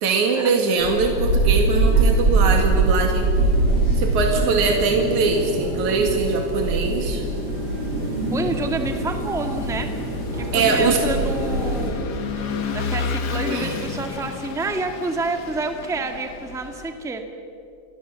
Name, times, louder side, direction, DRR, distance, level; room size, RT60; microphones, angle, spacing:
voice 1, 0.0-3.3 4.0-7.2 10.5-11.0 13.5-13.7, right 4 dB, 85° right, 3 dB, 3.5 m, -22 dB
sound 1, 0.8-11.9, right 2 dB, 50° right, 8.4 m, -23 dB
Vehicle / Engine, 7.2-17.0, left 5 dB, 45° left, 1.4 m, -32 dB
voice 2, 8.3-9.9 10.3-17.2, right 3 dB, ahead, 5 dB, 1.3 m, -29 dB
29.5 x 22.0 x 7.6 m, 2.6 s
omnidirectional pair, 3.3 m